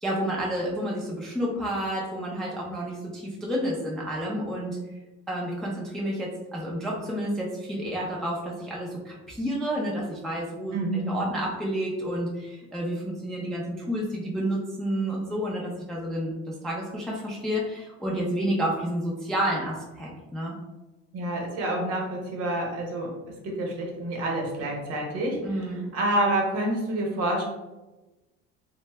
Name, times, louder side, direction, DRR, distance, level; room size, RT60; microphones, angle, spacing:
voice 1, 0.0-4.8 5.3-20.5 25.4-25.8, equal, ahead, -4 dB, 0.3 m, -30 dB
voice 2, 10.7-11.1 21.1-23.1 23.4-27.4, right 1 dB, 55° right, 0 dB, 0.9 m, -28 dB
2.6 x 2.1 x 3.2 m, 1.1 s
cardioid pair, 140°, 29 cm